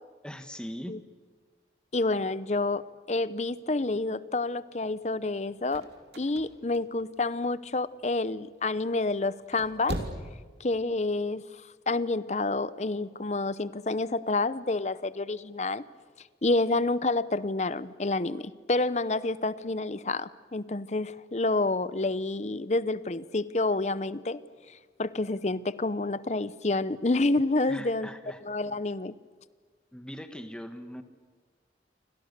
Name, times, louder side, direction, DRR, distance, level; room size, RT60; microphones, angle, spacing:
voice 1, 0.2-1.0 27.7-28.4 29.9-31.0, equal, 5° left, 8 dB, 1.4 m, -40 dB
voice 2, 1.9-5.9 6.2-10.0 10.6-11.5 11.9-15.8 16.4-24.4 24.7-28.1 28.4-29.1, left 2 dB, 40° left, 16 dB, 0.7 m, -29 dB
sound 1, 5.5-7.6 8.0-8.5 9.3-10.4 10.7-10.8, right 1 dB, 75° right, 2.9 m, -38 dB
29.0 x 25.5 x 6.8 m, 1.5 s
head